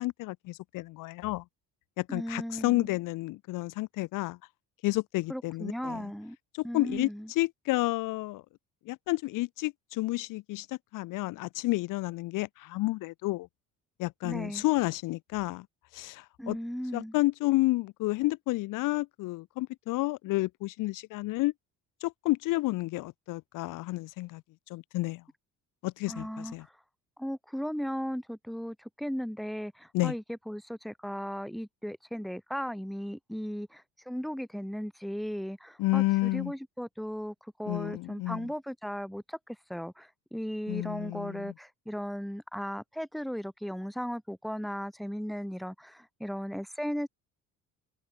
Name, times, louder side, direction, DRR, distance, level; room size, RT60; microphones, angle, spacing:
voice 1, 0.0-1.4 2.0-4.4 4.8-6.0 6.5-8.4 8.9-13.5 14.0-15.7 15.9-16.6 16.9-21.5 22.0-24.4 24.7-25.2 25.8-26.6 29.9-30.1 35.8-36.5 37.7-38.5 40.7-41.5, left 20 dB, 70° left, 0.8 m, -30 dB
voice 2, 2.1-2.9 5.3-6.4 6.6-7.3 14.2-14.6 16.4-17.1 26.1-26.7 27.2-47.1, equal, ahead, 2.2 m, -36 dB
cardioid pair, 165°, 34 cm